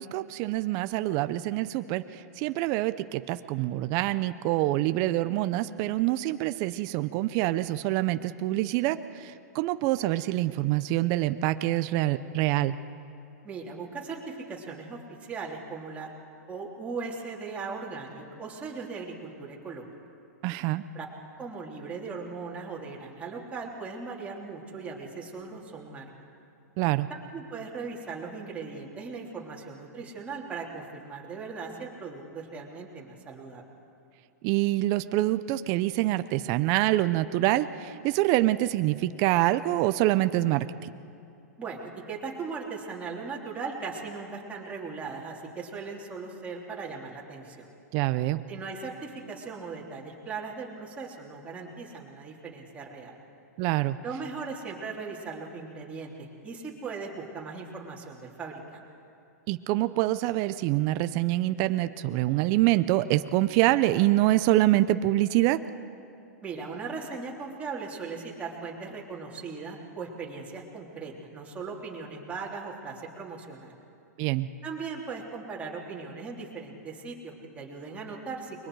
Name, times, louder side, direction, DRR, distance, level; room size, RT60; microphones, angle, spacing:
voice 1, 0.0-12.8 20.4-20.8 26.8-27.1 34.4-40.9 47.9-48.4 53.6-54.0 59.5-65.6 74.2-74.5, right 16 dB, 40° right, 12 dB, 0.6 m, -26 dB
voice 2, 13.4-16.1 16.5-19.8 20.9-21.1 21.4-26.0 27.1-33.6 41.6-47.7 48.5-53.1 54.0-58.8 66.4-73.8 74.6-78.7, right 4 dB, 15° right, -3 dB, 3.1 m, -38 dB
29.5 x 22.0 x 4.8 m, 2.6 s
hypercardioid pair, 135°, 9 cm